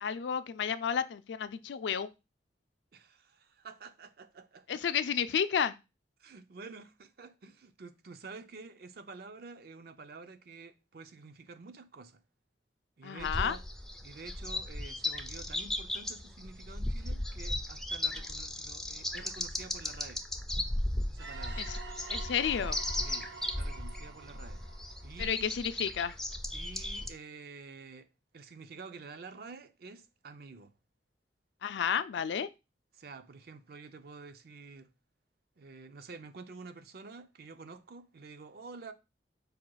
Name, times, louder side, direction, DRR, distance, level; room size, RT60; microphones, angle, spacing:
voice 1, 0.0-2.1 4.7-5.7 13.0-13.6 21.6-21.8 22.1-22.8 25.2-26.1 31.6-32.5, left 7 dB, 80° left, 0.4 m, -31 dB
voice 2, 2.9-4.8 6.2-12.2 13.0-13.6 14.0-20.2 21.1-21.7 23.0-24.6 25.0-25.6 26.5-28.1 28.3-30.7 32.9-34.9 35.6-38.9, right 4 dB, 60° right, 0.5 m, -49 dB
sound 1, 13.2-27.1, left 1 dB, ahead, 0.3 m, -36 dB
sound 2, 21.2-25.8, right 4 dB, 85° right, 0.8 m, -48 dB
4.8 x 2.3 x 4.6 m
head